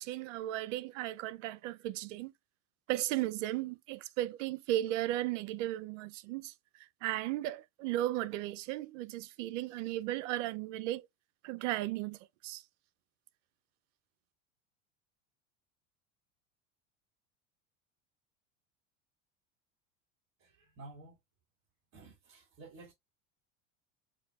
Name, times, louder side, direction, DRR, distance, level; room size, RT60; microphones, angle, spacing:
voice 1, 0.0-2.3 2.9-6.5 7.0-11.1 11.4-12.6, right 15 dB, 70° right, 0.6 m, -35 dB
voice 2, 20.4-21.2 21.9-22.9, right 2 dB, 40° right, 2.8 m, -52 dB
6.6 x 2.7 x 2.4 m
hypercardioid pair, 90°, 38 cm